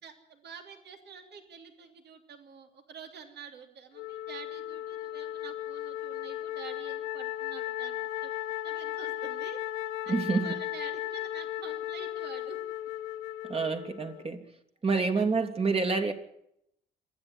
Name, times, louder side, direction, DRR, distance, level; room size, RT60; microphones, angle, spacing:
voice 1, 0.0-8.3 8.6-9.6 10.0-12.6 13.7-13.8 14.9-15.2, right 6 dB, 55° right, 5 dB, 3.2 m, -48 dB
Wind instrument woodwind instrument, 3.9-14.3, left 13 dB, 70° left, 1.1 m, -36 dB
voice 2, 10.1-10.5 13.4-14.4 14.8-16.1, right 4 dB, 30° right, 6 dB, 2.9 m, -27 dB
27.0 x 10.0 x 9.5 m, 0.77 s
hypercardioid pair, 50°, 21 cm